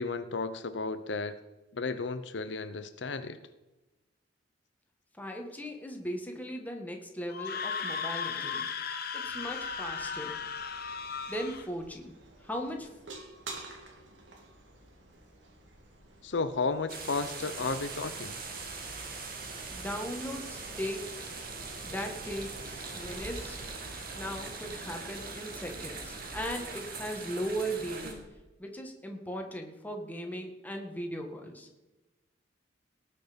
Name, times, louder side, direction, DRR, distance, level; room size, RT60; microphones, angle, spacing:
voice 1, 0.0-1.4 1.7-3.4 16.2-18.4, left 4 dB, 75° left, 11 dB, 0.7 m, -33 dB
voice 2, 5.2-8.7 9.1-10.4 11.3-12.1 12.4-12.9 19.7-21.3 21.8-23.6 24.2-28.2 28.6-31.7, equal, 10° left, 2 dB, 1.7 m, -38 dB
Screaming, 7.3-11.7, left 6 dB, 55° left, 1.2 m, -36 dB
sound 1, 9.2-28.2, right 1 dB, 80° right, 2.7 m, -50 dB
sound 2, 16.9-28.1, right 4 dB, 55° right, 2.3 m, -41 dB
18.5 x 6.6 x 5.2 m, 1.1 s
head